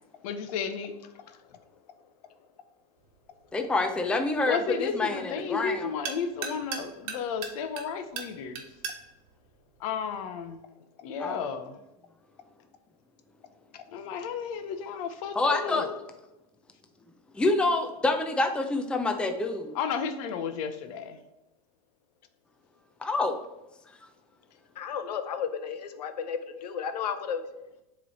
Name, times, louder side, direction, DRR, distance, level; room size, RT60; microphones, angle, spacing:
voice 1, 0.2-0.9 4.4-8.6 9.8-10.6 11.0-11.8 13.9-15.9 19.7-21.2, left 6 dB, 60° left, 9 dB, 0.8 m, -33 dB
sound 1, 3.0-10.6, right 6 dB, 60° right, 1.2 m, -42 dB
voice 2, 3.5-5.9 11.2-11.5 15.3-15.9 17.3-19.8 23.0-23.4, left 2 dB, 5° left, 5 dB, 0.5 m, -27 dB
voice 3, 24.8-27.5, left 7 dB, 85° left, 8 dB, 0.6 m, -33 dB
7.4 x 3.2 x 4.0 m, 0.96 s
hypercardioid pair, 120°, 20 cm